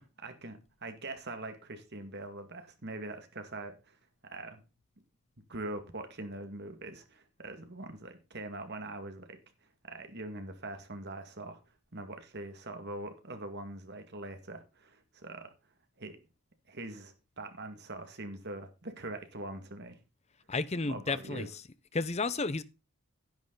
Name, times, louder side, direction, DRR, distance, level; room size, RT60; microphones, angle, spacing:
voice 1, 0.2-4.0 4.2-4.6 5.5-9.4 9.8-11.6 11.9-15.5 16.0-16.2 16.7-20.0 20.9-21.5, right 2 dB, 50° right, 2.1 m, -43 dB
voice 2, 20.5-21.5 21.9-22.6, left 3 dB, 30° left, 0.7 m, -32 dB
10.5 x 9.8 x 3.9 m
head